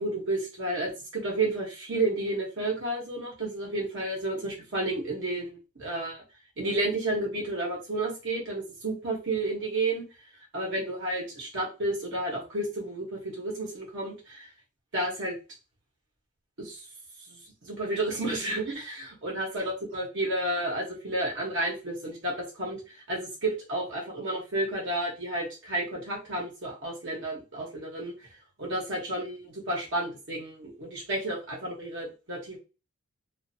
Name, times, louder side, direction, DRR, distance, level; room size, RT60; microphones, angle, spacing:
voice 1, 0.0-6.2 6.6-10.0 10.5-14.5 14.9-15.3 16.6-16.8 17.3-22.8 23.1-28.1 28.6-32.6, right 2 dB, 55° right, -2 dB, 1.0 m, -31 dB
2.5 x 2.5 x 2.7 m, 0.31 s
head